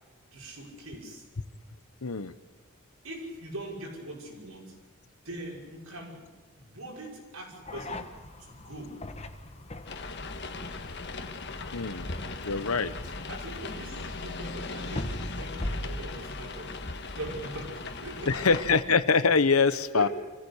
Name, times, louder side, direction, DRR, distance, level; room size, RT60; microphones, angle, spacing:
voice 1, 0.3-1.2 3.0-4.8 5.2-8.1 8.4-9.1 13.3-16.8 17.1-18.5 19.7-20.1, right 1 dB, 85° right, -1 dB, 5.7 m, -41 dB
voice 2, 2.0-2.3 11.7-12.1 12.4-12.9 18.3-20.1, left 5 dB, 85° left, 14 dB, 1.0 m, -24 dB
sound 1, 7.6-18.9, left 1 dB, 30° left, 1.3 m, -42 dB
sound 2, 9.9-18.8, left 3 dB, 55° left, 1.5 m, -38 dB
25.5 x 15.5 x 8.2 m, 1.3 s
head